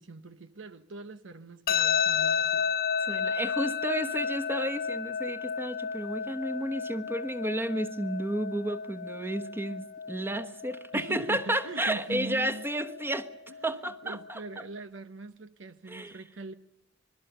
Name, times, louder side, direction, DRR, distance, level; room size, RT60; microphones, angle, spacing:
voice 1, 0.0-2.7 10.9-12.7 13.5-16.5, right 3 dB, 80° right, 1.0 m, -42 dB
sound 1, 1.7-14.6, left 7 dB, 55° left, 0.9 m, -33 dB
voice 2, 3.0-13.3 13.6-14.4 15.9-16.2, right 1 dB, 10° right, 1.2 m, -32 dB
26.5 x 21.5 x 6.8 m
head